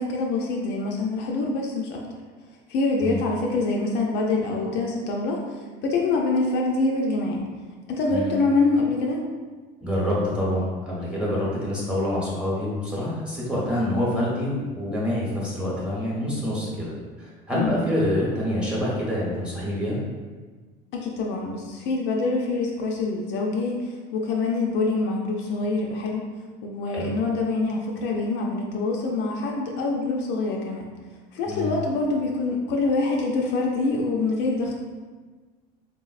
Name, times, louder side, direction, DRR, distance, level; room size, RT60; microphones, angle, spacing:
voice 1, 0.0-2.0 2.7-7.4 7.9-9.2 17.5-17.8 20.9-26.2 26.6-30.9 31.3-34.8, left 3 dB, 55° left, -1 dB, 0.4 m, -25 dB
voice 2, 9.8-16.9 17.2-20.0 26.9-27.1 31.5-31.7, left 1 dB, 5° right, -6 dB, 0.9 m, -26 dB
3.8 x 2.0 x 2.4 m, 1.4 s
supercardioid pair, 115°, 21 cm